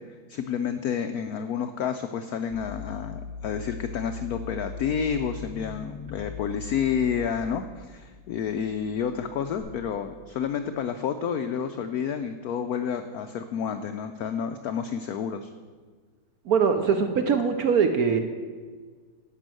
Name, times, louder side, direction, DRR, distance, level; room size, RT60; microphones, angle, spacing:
voice 1, 0.3-15.5, left 7 dB, 85° left, 8 dB, 0.8 m, -30 dB
sound 1, 2.5-9.6, left 5 dB, 45° left, 4.0 m, -40 dB
voice 2, 16.5-18.2, right 6 dB, 65° right, 7 dB, 1.0 m, -22 dB
11.5 x 5.8 x 7.6 m, 1.5 s
omnidirectional pair, 2.2 m